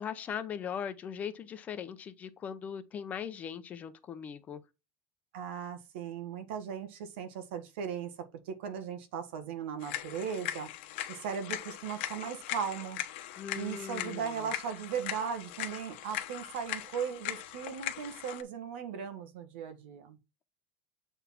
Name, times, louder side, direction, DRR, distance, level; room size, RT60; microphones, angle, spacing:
voice 1, 0.0-4.6 13.4-14.5, left 8 dB, 25° left, 0.7 m, -39 dB
voice 2, 5.3-10.7 11.1-13.0 13.5-20.2, right 7 dB, 90° right, 1.7 m, -38 dB
sound 1, 9.8-18.4, left 13 dB, 75° left, 1.0 m, -40 dB
8.0 x 4.0 x 4.4 m
cardioid pair, 165°, 6 cm